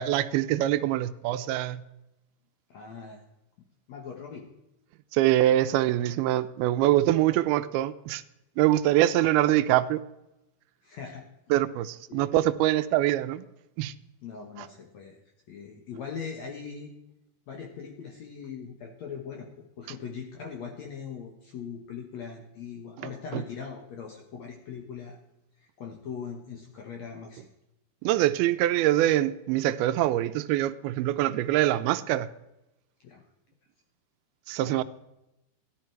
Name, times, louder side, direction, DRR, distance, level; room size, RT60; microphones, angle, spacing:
voice 1, 0.0-1.8 5.1-8.2 8.6-10.0 11.5-13.5 13.8-13.9 23.3-23.4 28.0-32.3 34.5-34.8, right 14 dB, 80° right, 12 dB, 2.4 m, -24 dB
voice 2, 2.7-3.2 3.9-4.5 9.2-9.3 10.8-11.2 12.1-12.3 14.2-15.2 15.5-16.9 17.5-25.2 25.6-27.5 33.0-33.2 34.6-34.8, left 6 dB, 65° left, 1 dB, 1.8 m, -40 dB
14.0 x 11.0 x 4.5 m, 0.91 s
omnidirectional pair, 4.6 m